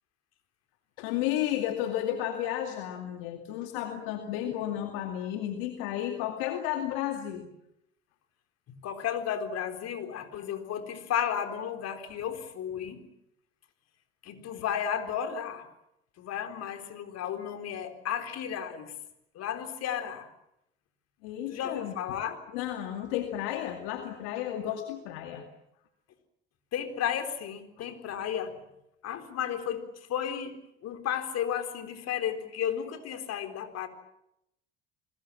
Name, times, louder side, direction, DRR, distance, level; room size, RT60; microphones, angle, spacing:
voice 1, 1.0-7.5 21.2-22.0 22.5-25.5 27.8-27.9, left 12 dB, 75° left, 5 dB, 2.4 m, -32 dB
voice 2, 8.8-13.0 14.2-15.7 16.2-18.9 19.3-20.3 21.5-22.4 26.7-28.5 29.0-30.6 30.8-33.9, left 9 dB, 60° left, 7 dB, 4.2 m, -33 dB
29.5 x 21.0 x 7.5 m, 0.81 s
hypercardioid pair, 60°, 29 cm